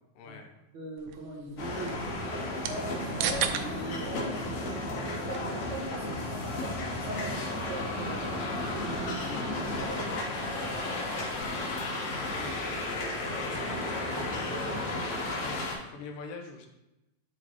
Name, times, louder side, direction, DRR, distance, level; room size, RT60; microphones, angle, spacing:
voice 1, 0.2-0.5 10.8-14.9 15.2-16.7, left 4 dB, 85° left, 3 dB, 2.5 m, -45 dB
voice 2, 0.7-2.1 2.5-10.2, right 1 dB, 65° right, -4 dB, 3.0 m, -41 dB
sound 1, 1.0-11.7, right 9 dB, 90° right, 1.6 m, -41 dB
sound 2, 1.6-15.7, left 2 dB, 60° left, 2.5 m, -33 dB
11.5 x 3.9 x 3.1 m, 0.95 s
omnidirectional pair, 3.8 m